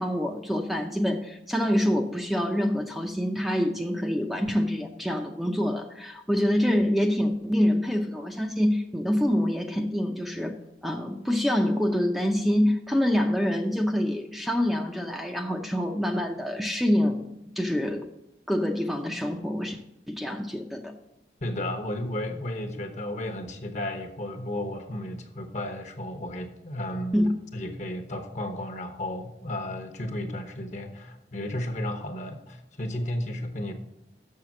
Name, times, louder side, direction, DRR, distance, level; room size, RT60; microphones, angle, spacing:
voice 1, 0.0-10.6 10.8-17.2 17.6-18.1 18.5-19.8 20.1-20.9 27.1-27.4, equal, ahead, 2 dB, 0.6 m, -26 dB
voice 2, 21.4-27.2 27.5-33.7, left 1 dB, 40° left, 7 dB, 1.0 m, -33 dB
6.6 x 6.6 x 7.3 m, 0.84 s
head